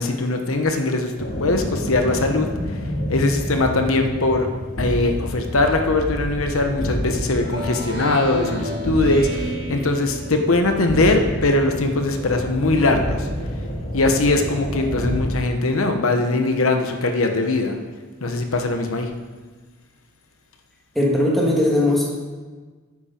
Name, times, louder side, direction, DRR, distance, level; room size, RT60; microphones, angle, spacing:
voice 1, 0.0-2.5 3.1-4.5 4.8-13.3 13.9-17.8 18.2-19.1, left 2 dB, 75° left, 5 dB, 1.1 m, -21 dB
sound 1, 1.2-15.3, equal, 50° left, 2.3 m, -29 dB
Speech synthesizer, 7.3-10.8, right 1 dB, 45° right, 2.4 m, -32 dB
voice 2, 21.0-22.1, left 1 dB, ahead, -5 dB, 2.5 m, -19 dB
12.0 x 9.7 x 4.5 m, 1.4 s
head